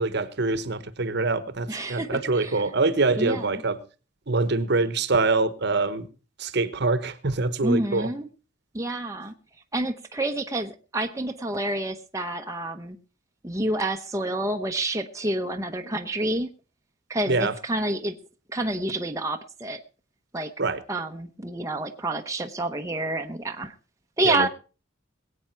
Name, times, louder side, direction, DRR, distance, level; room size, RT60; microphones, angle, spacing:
voice 1, 0.0-3.8 4.3-6.1 6.4-8.1 17.3-17.5 20.6-20.8 24.2-24.5, right 3 dB, 60° right, 1.1 m, -24 dB
voice 2, 1.7-2.6 3.1-3.5 7.6-8.3 8.7-9.3 9.7-13.0 13.4-16.5 17.1-18.1 18.5-19.8 20.3-20.5 20.9-23.7 24.2-24.5, right 1 dB, 15° right, 0.8 m, -28 dB
21.5 x 8.7 x 4.5 m
head